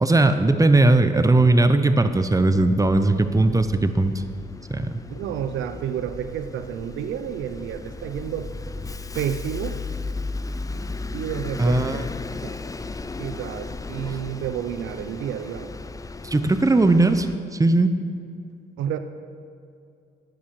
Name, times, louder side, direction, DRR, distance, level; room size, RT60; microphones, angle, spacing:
voice 1, 0.0-4.1 4.7-4.9 11.6-12.0 16.2-17.3 17.5-17.9, right 2 dB, 15° right, 10 dB, 0.7 m, -18 dB
Bus, 2.1-17.4, left 3 dB, 15° left, 0.5 m, -35 dB
voice 2, 5.1-8.5 9.1-9.8 11.1-12.0 12.4-12.5 13.2-15.7 18.8-19.0, right 9 dB, 80° right, 10 dB, 0.7 m, -30 dB
10.0 x 8.6 x 4.8 m, 2.5 s
supercardioid pair, 65°, 20 cm